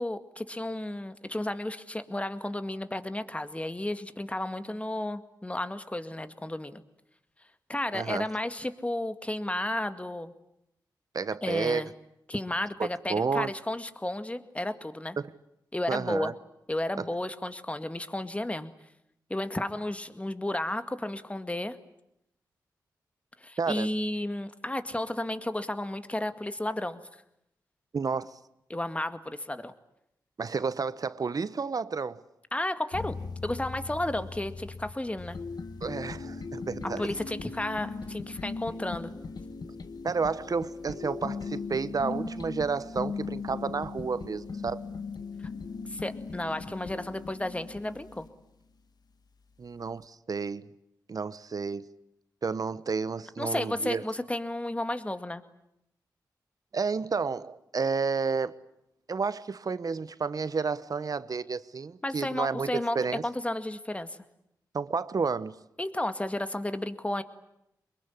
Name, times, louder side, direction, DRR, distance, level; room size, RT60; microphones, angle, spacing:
voice 1, 0.0-6.8 7.7-10.3 11.4-11.9 12.3-15.2 15.7-16.3 16.7-18.7 19.3-21.8 23.4-27.0 28.7-29.7 32.5-35.4 36.8-39.1 45.9-48.3 53.4-55.4 62.0-63.0 63.2-64.2 65.8-67.2, left 1 dB, 15° left, 2.1 m, -33 dB
voice 2, 7.9-8.3 11.1-11.9 12.8-13.5 15.2-15.3 15.9-16.3 17.0-17.1 23.6-23.9 27.9-28.3 30.4-32.2 35.8-37.1 40.0-44.9 49.6-50.7 51.1-51.9 52.4-54.0 56.7-58.6 59.1-63.2 64.7-65.5, right 5 dB, 55° right, 1.1 m, -31 dB
sound 1, 32.9-48.3, left 4 dB, 65° left, 1.7 m, -39 dB
24.5 x 22.0 x 9.9 m
cardioid pair, 55°, 7 cm